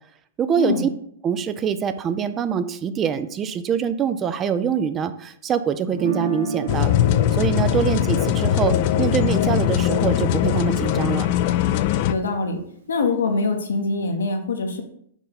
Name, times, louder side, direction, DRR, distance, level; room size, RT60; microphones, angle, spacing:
voice 1, 0.4-0.8 1.2-6.9 7.3-11.3, right 7 dB, 25° right, 11 dB, 0.4 m, -24 dB
Guitar, 5.9-11.9, right 4 dB, 75° right, 1.1 m, -34 dB
sound 1, 6.7-12.1, left 12 dB, 45° left, 0.3 m, -20 dB
voice 2, 12.1-12.6 12.9-14.8, left 3 dB, 75° left, 5 dB, 0.9 m, -23 dB
5.1 x 4.5 x 4.0 m, 0.69 s
figure-of-eight pair, 110°, 0 cm